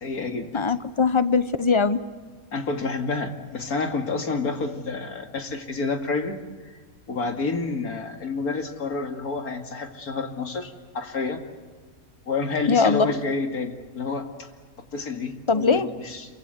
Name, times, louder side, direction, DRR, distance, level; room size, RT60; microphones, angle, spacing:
voice 1, 0.0-0.7 2.5-6.3 7.1-11.4 12.3-14.5 14.9-16.4, left 3 dB, 85° left, 5 dB, 2.7 m, -29 dB
voice 2, 0.5-2.0 12.7-13.1 15.5-15.9, left 5 dB, 25° left, 13 dB, 0.7 m, -21 dB
27.5 x 23.5 x 8.1 m, 1.4 s
omnidirectional pair, 1.5 m